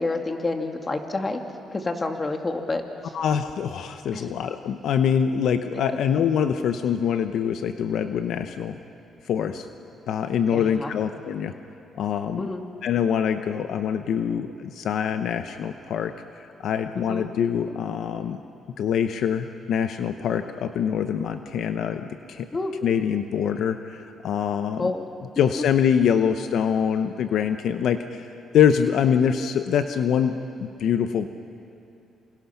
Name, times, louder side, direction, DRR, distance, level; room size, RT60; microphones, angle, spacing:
voice 1, 0.0-1.4 1.7-3.1 4.1-4.3 10.5-10.9 12.4-12.6 17.1-17.2 22.5-22.7 24.8-25.0, left 2 dB, 25° left, 4 dB, 2.5 m, -28 dB
voice 2, 3.1-8.8 9.2-9.7 10.1-11.5 11.9-12.4 12.8-16.1 16.4-18.4 18.8-22.5 22.8-24.9 25.4-28.3 28.5-31.3, left 8 dB, 70° left, 8 dB, 0.9 m, -24 dB
28.0 x 27.0 x 5.9 m, 2.8 s
cardioid pair, 90°, 0 cm